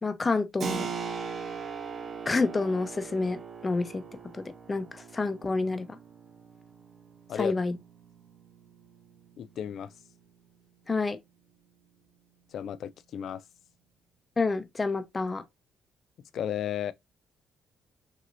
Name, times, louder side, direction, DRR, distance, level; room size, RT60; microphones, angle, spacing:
voice 1, 0.0-0.9 2.3-4.0 4.3-5.9 7.3-7.8 10.9-11.2 14.4-15.4, left 3 dB, 25° left, 0.7 m, -28 dB
Keyboard (musical), 0.6-11.0, right 6 dB, 50° right, 0.7 m, -41 dB
voice 2, 9.4-9.9 12.5-13.4 16.3-16.9, left 9 dB, 70° left, 0.4 m, -33 dB
6.1 x 2.7 x 2.6 m
cardioid pair, 90°, 0 cm